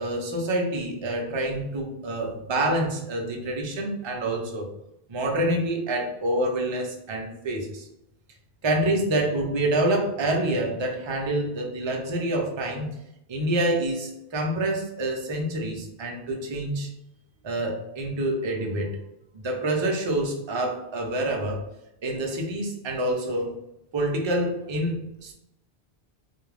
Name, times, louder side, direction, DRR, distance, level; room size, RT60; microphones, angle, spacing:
voice 1, 0.0-4.7 5.1-7.9 8.6-12.9 13.3-16.9 17.4-19.0 19.3-21.6 22.0-23.5 23.9-24.9 25.2-25.3, right 1 dB, 40° right, 0 dB, 0.4 m, -27 dB
2.5 x 2.3 x 3.2 m, 0.84 s
omnidirectional pair, 1.1 m